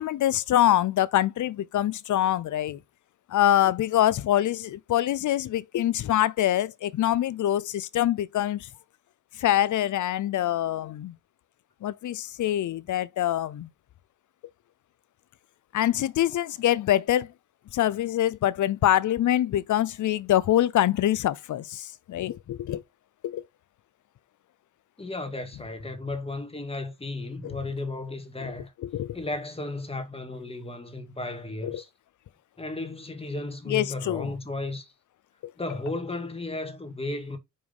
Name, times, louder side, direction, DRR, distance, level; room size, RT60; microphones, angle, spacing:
voice 1, 0.0-2.8 3.3-8.7 9.4-11.1 11.8-13.7 15.7-17.3 17.7-22.8 23.2-23.4 27.4-27.6 28.4-28.5 28.8-29.2 31.6-31.8 33.7-34.3, left 12 dB, 65° left, 0.7 m, -25 dB
voice 2, 25.0-28.7 29.1-31.9 32.6-34.9 35.6-37.4, left 2 dB, 20° left, 2.1 m, -34 dB
5.6 x 4.8 x 5.4 m
cardioid pair, 75°, 32 cm